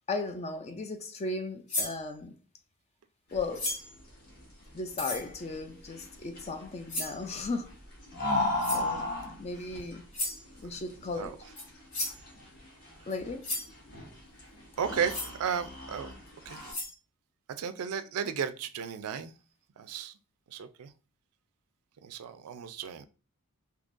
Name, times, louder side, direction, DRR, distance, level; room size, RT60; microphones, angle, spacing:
voice 1, 0.1-2.3 3.3-3.7 4.7-7.7 8.1-8.2 8.7-9.1 9.4-10.0 10.6-11.4 13.1-13.5, left 3 dB, 30° left, 0.4 m, -36 dB
sound 1, 1.7-2.0 3.5-4.0 4.9-5.3 6.9-7.2 8.6-8.9 10.1-10.4 11.6-11.7 11.9-12.2 13.1-13.2 13.4-13.7 15.1-15.3 16.3-16.4 16.7-16.9, left 2 dB, 85° left, 1.6 m, -34 dB
sound 2, 3.3-16.7, left 2 dB, 45° left, 1.5 m, -37 dB
voice 2, 14.8-16.1 16.5-16.6 17.6-19.3 19.8-20.1 20.5-20.9 22.0-23.0, right 7 dB, 70° right, 0.4 m, -34 dB
3.7 x 2.8 x 2.5 m
head